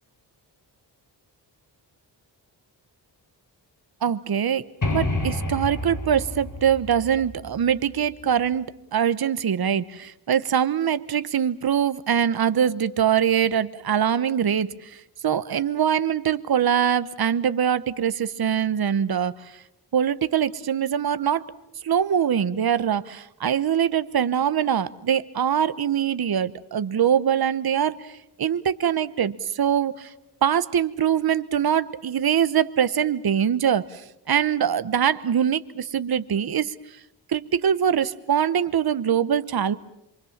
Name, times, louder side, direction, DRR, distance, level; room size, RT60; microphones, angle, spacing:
voice 1, 4.0-4.6 4.9-8.7 8.9-14.9 15.2-19.5 19.9-21.5 21.8-28.1 28.4-30.1 30.4-34.0 34.3-36.7 37.3-39.8, right 8 dB, 60° right, 14 dB, 1.1 m, -23 dB
sound 1, 4.8-8.5, left 2 dB, 45° left, 5.8 m, -30 dB
26.5 x 24.5 x 7.3 m, 0.82 s
cardioid pair, 75°, 42 cm